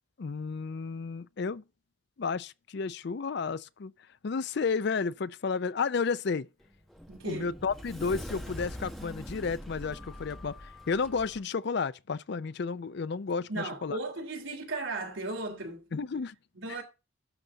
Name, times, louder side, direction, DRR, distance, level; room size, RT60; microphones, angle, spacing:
voice 1, 0.2-1.6 2.2-3.9 4.2-6.5 7.2-14.0 15.9-16.3, left 5 dB, 55° left, 0.4 m, -32 dB
Sliding door, 6.6-11.4, equal, ahead, 1.0 m, -43 dB
voice 2, 7.1-7.6 13.5-16.0 16.5-16.8, right 2 dB, 70° right, 3.1 m, -36 dB
12.0 x 4.0 x 7.7 m
head